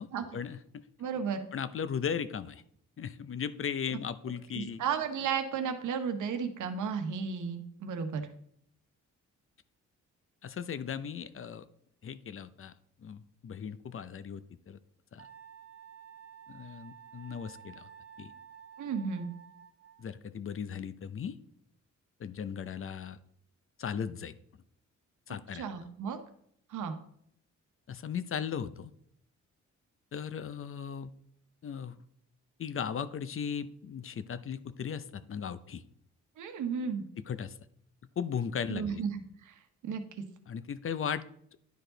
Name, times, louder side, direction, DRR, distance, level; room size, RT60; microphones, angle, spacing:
voice 1, 0.3-0.8 1.5-2.6 3.0-4.8 10.4-11.6 12.0-12.7 13.0-14.4 14.7-14.8 15.1-15.3 16.5-17.9 18.2-18.3 20.0-21.4 22.2-23.2 23.8-24.3 25.3-25.6 27.9-28.9 30.1-31.1 31.6-32.0 32.6-35.8 37.3-37.6 38.2-39.0 40.5-41.2, left 7 dB, 45° left, 14 dB, 0.6 m, -37 dB
voice 2, 1.0-1.5 4.5-8.3 18.8-19.3 25.5-26.2 26.7-27.0 36.4-37.0 38.7-40.2, right 6 dB, 85° right, 7 dB, 1.0 m, -34 dB
Wind instrument woodwind instrument, 15.2-20.2, right 8 dB, 50° right, 0.8 m, -52 dB
10.5 x 4.7 x 3.9 m, 0.68 s
cardioid pair, 80°, 30 cm